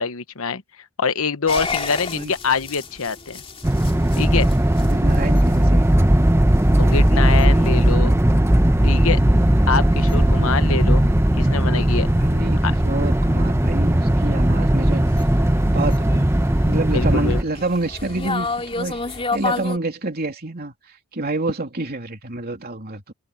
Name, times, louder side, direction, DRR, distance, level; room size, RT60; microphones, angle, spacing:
voice 1, 0.0-3.4 4.2-4.5 6.8-8.1 8.8-9.2 9.7-11.1 11.4-12.1 12.6-12.7 16.9-17.4, left 5 dB, 65° left, 1.0 m, -25 dB
sound 1, 1.5-19.8, left 2 dB, 25° left, 2.9 m, -31 dB
sound 2, 3.6-17.4, right 1 dB, 10° right, 0.9 m, -17 dB
voice 2, 4.8-5.9 12.2-15.3 15.6-16.3 16.6-23.1, right 2 dB, 45° right, 3.2 m, -28 dB
head